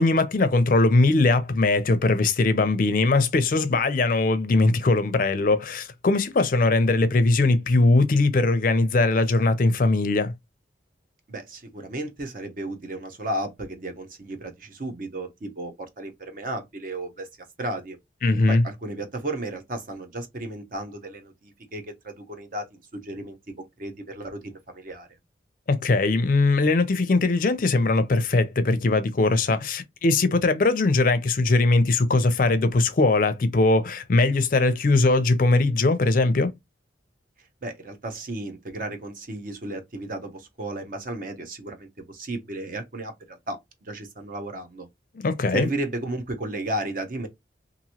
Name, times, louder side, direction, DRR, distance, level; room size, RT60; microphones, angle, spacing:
voice 1, 0.0-10.3 18.2-18.6 25.7-36.5 45.2-45.7, left 3 dB, 45° left, 0.4 m, -20 dB
voice 2, 11.3-17.3 17.6-18.0 18.5-25.1 37.4-44.9 45.5-47.3, right 1 dB, 45° right, 0.7 m, -34 dB
2.9 x 2.6 x 2.8 m
head